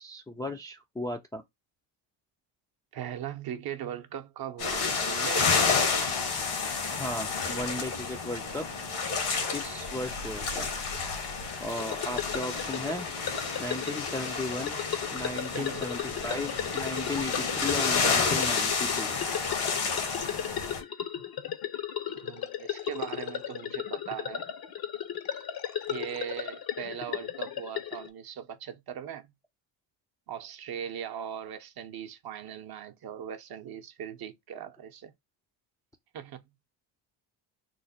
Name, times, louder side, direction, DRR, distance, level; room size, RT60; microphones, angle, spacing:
voice 1, 0.0-1.4 6.9-8.7 9.5-10.7 11.6-13.1 13.6-14.8 15.1-19.1, left 1 dB, 10° left, 0.3 m, -35 dB
voice 2, 2.9-5.7 15.5-15.9 22.0-24.5 25.9-29.3 30.3-35.1 36.1-36.4, right 9 dB, 50° right, 0.7 m, -39 dB
sound 1, 4.6-20.8, left 5 dB, 80° left, 1.4 m, -30 dB
sound 2, 11.7-28.1, left 10 dB, 50° left, 0.6 m, -36 dB
3.1 x 2.1 x 4.0 m
cardioid pair, 90°, 50 cm